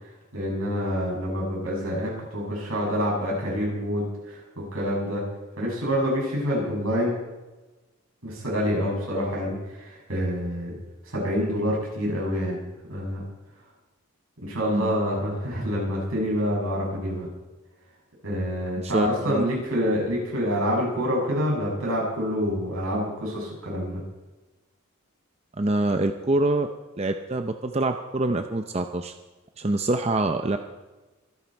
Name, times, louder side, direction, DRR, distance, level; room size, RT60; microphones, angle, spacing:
voice 1, 0.3-4.4 4.7-5.2 5.6-7.1 8.2-10.8 11.0-12.6 12.9-13.2 14.4-17.3 18.2-24.0, equal, 75° right, -3 dB, 7.5 m, -27 dB
voice 2, 18.8-19.4 25.6-26.7 27.0-29.1 29.6-30.6, right 2 dB, 30° right, 6 dB, 0.7 m, -25 dB
25.0 x 11.5 x 4.6 m, 1.1 s
head